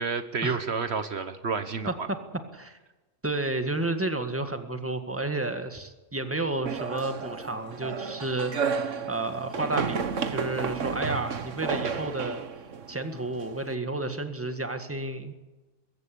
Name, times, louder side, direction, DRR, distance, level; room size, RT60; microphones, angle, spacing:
voice 1, 0.0-2.1, right 5 dB, 60° right, 10 dB, 1.3 m, -30 dB
voice 2, 3.2-8.7 9.1-9.9 10.3-12.4 12.9-15.3, right 2 dB, 10° right, 7 dB, 1.8 m, -31 dB
sound 1, 6.7-13.7, right 6 dB, 90° right, 1.6 m, -32 dB
21.5 x 15.5 x 8.5 m, 1.2 s
omnidirectional pair, 1.2 m